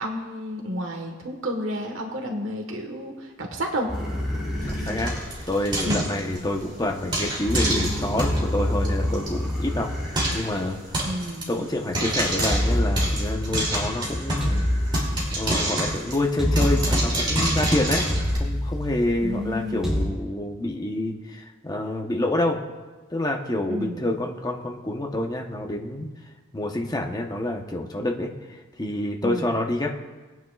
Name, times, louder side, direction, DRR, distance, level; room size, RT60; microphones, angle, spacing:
voice 1, 0.0-3.9 5.8-6.1 11.0-11.7 19.2-20.1 23.7-24.1 29.2-29.6, equal, 80° right, 2 dB, 1.4 m, -31 dB
sound 1, 3.9-20.0, left 1 dB, 5° right, 3.3 m, -28 dB
Frying (food), 4.6-6.6 7.1-8.4 8.8-8.9 9.1-9.3 9.6-9.7 10.2-10.5 10.9-11.4 11.9-14.6 14.9-18.4, right 1 dB, 25° right, 2.7 m, -27 dB
voice 2, 4.7-5.2 5.5-9.9 10.3-11.1 11.5-14.5 15.4-18.0 18.3-22.6 23.1-26.1 26.5-30.0, left 1 dB, 20° left, 1 dB, 0.9 m, -27 dB
20.5 x 9.4 x 2.4 m, 1.3 s
head